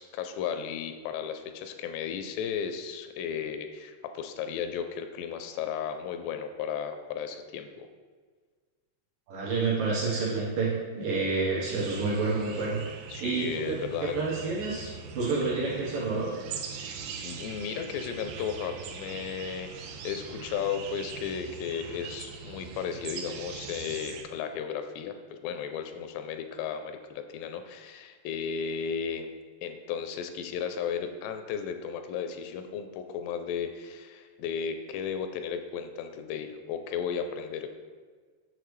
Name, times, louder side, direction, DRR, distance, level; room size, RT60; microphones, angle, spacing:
voice 1, 0.0-7.9 13.1-14.2 16.8-29.3 29.6-37.8, left 7 dB, 85° left, 7 dB, 2.6 m, -35 dB
voice 2, 9.3-12.8 13.2-16.3, right 4 dB, 65° right, -6 dB, 2.4 m, -29 dB
sound 1, 11.7-24.2, right 6 dB, 85° right, 2.2 m, -41 dB
7.9 x 7.0 x 3.2 m, 1.5 s
omnidirectional pair, 4.9 m